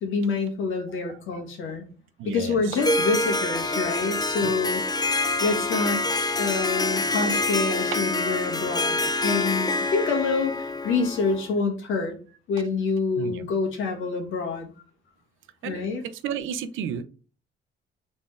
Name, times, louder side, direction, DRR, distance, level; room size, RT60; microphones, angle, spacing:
voice 1, 0.0-1.9 2.2-4.8 5.4-6.0 6.4-12.2 12.5-14.7 15.6-16.0, left 4 dB, 85° left, 1.6 m, -27 dB
voice 2, 0.9-1.4 2.2-2.8 4.4-4.5 7.9-8.0 13.2-13.5 15.6-17.0, right 8 dB, 85° right, 0.6 m, -33 dB
Harp, 2.8-11.5, left 2 dB, 20° left, 0.6 m, -26 dB
4.2 x 3.6 x 3.5 m
cardioid pair, 90°, 20 cm